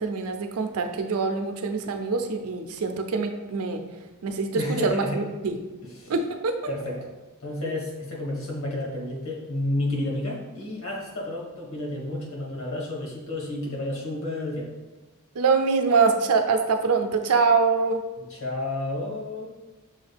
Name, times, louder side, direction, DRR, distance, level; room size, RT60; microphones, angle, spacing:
voice 1, 0.0-3.8 4.2-5.6 6.1-6.6 15.4-18.0, right 4 dB, 80° right, 6 dB, 0.5 m, -24 dB
voice 2, 4.5-5.2 5.8-6.1 6.7-7.1 7.4-14.7 18.2-19.5, left 1 dB, 65° left, -3 dB, 1.4 m, -31 dB
6.3 x 2.4 x 3.3 m, 1.2 s
head